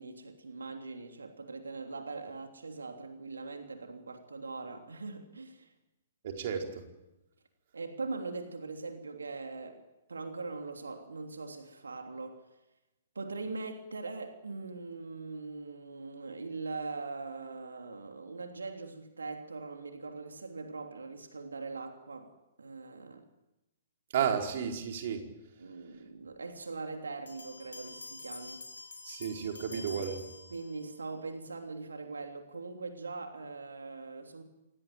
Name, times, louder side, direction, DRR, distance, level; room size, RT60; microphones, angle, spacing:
voice 1, 0.0-5.7 7.7-9.8 10.1-12.4 13.1-22.3 22.6-23.2 25.6-28.6 29.7-30.1 30.5-34.4, right 3 dB, 75° right, 3.1 m, -41 dB
voice 2, 6.2-6.8 24.1-25.3 29.0-30.2, right 7 dB, 50° right, 4.7 m, -32 dB
Bell, 27.3-31.0, left 3 dB, 75° left, 4.5 m, -47 dB
27.0 x 18.0 x 9.2 m
figure-of-eight pair, 115°, 0 cm